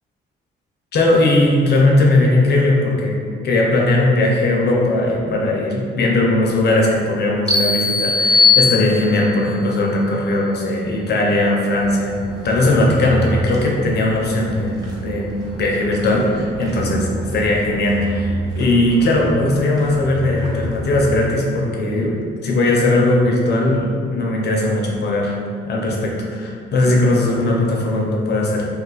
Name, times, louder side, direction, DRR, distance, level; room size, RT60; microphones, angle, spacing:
voice 1, 0.9-3.2 3.4-15.3 15.6-22.2 22.4-25.4 25.6-28.7, left 2 dB, 55° left, -2 dB, 0.7 m, -18 dB
sound 1, 7.5-9.3, left 4 dB, 5° left, 0.7 m, -17 dB
sound 2, 11.8-21.3, right 1 dB, 20° right, 1.0 m, -30 dB
2.5 x 2.4 x 3.9 m, 2.3 s
cardioid pair, 90°, 20 cm